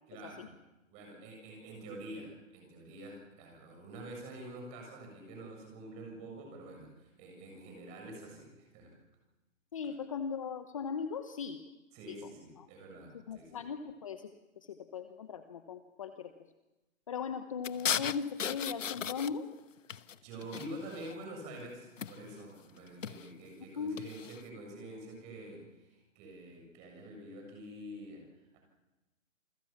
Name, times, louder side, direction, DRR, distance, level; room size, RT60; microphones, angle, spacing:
voice 1, 0.1-0.5 0.9-9.0 11.9-13.6 20.2-28.3 28.5-28.6, right 1 dB, 15° right, 2 dB, 7.3 m, -47 dB
voice 2, 9.7-11.6 12.1-12.2 12.6-12.7 13.3-14.3 14.6-16.3 17.1-19.5 23.8-24.0, left 6 dB, 25° left, 8 dB, 1.0 m, -38 dB
sound 1, 17.6-19.6 19.9-21.2 22.0-22.4 22.9-23.3 24.0-24.4, left 8 dB, 70° left, 1.2 m, -37 dB
29.0 x 21.5 x 7.3 m, 1.0 s
hypercardioid pair, 170°, 40 cm